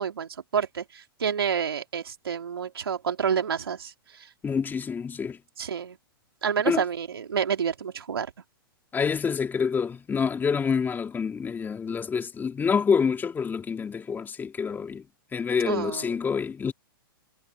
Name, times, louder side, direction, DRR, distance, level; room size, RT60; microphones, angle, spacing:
voice 1, 0.0-4.3 5.6-6.0 6.4-8.3 15.6-16.2, right 7 dB, 90° right, 3.4 m, -29 dB
voice 2, 4.4-5.4 6.6-6.8 8.9-15.0 15.3-16.7, left 6 dB, 15° left, 3.4 m, -27 dB
hypercardioid pair, 125°, 12 cm